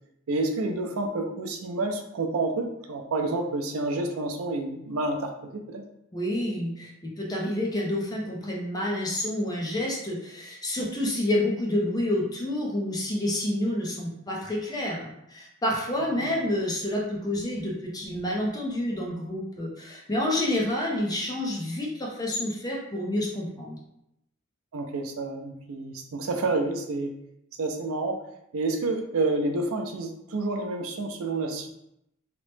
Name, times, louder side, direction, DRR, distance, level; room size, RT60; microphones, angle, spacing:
voice 1, 0.3-5.8 16.2-16.3 24.7-27.1 27.6-28.2 28.5-31.7, right 2 dB, 85° right, 5 dB, 0.4 m, -29 dB
voice 2, 6.1-6.9 7.2-23.8, left 1 dB, 20° left, -2 dB, 0.5 m, -29 dB
2.9 x 2.0 x 3.2 m, 0.80 s
head